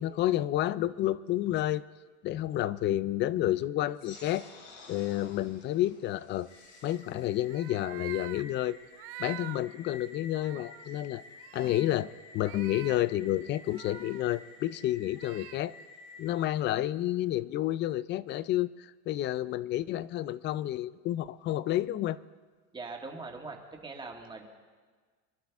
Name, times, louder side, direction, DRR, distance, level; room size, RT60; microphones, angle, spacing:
voice 1, 0.0-1.8 2.2-4.5 4.9-6.5 6.8-8.8 9.2-11.2 11.5-12.1 12.3-15.7 16.2-22.2, left 14 dB, 35° left, 18 dB, 0.4 m, -30 dB
sound 1, 4.0-9.0, left 3 dB, 85° left, 4.4 m, -54 dB
sound 2, 6.5-16.3, left 3 dB, 50° left, 3.9 m, -52 dB
sound 3, 7.5-8.4 8.9-9.6 10.1-10.2 10.3-10.9 11.4-12.0 12.4-13.0 13.6-14.2 15.2-15.6, right 17 dB, 40° right, 0.4 m, -45 dB
voice 2, 22.7-24.5, right 3 dB, 15° right, 1 dB, 1.8 m, -42 dB
26.0 x 11.5 x 3.5 m, 1.5 s
supercardioid pair, 140°, 35 cm